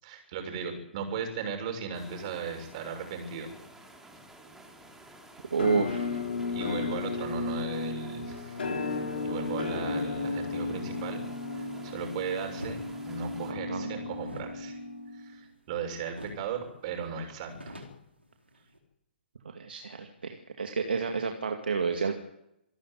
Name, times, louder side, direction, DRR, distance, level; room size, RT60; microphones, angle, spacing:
voice 1, 0.0-3.5 6.5-8.9 9.2-11.2 11.5-14.8 15.1-17.7, right 5 dB, 40° right, 4 dB, 6.9 m, -37 dB
sound 1, 1.9-13.5, right 1 dB, 5° right, 3.3 m, -52 dB
voice 2, 5.5-6.2 13.5-13.9 19.4-22.2, right 5 dB, 65° right, 4 dB, 2.2 m, -30 dB
Musical instrument, 5.6-15.4, left 3 dB, 60° left, 3.8 m, -34 dB
sound 2, 12.5-12.8 14.2-15.8 16.1-16.5 16.8-16.9 17.3-18.8, equal, 85° right, 4.5 m, -45 dB
27.0 x 12.5 x 9.5 m, 0.84 s
figure-of-eight pair, 120°, 6 cm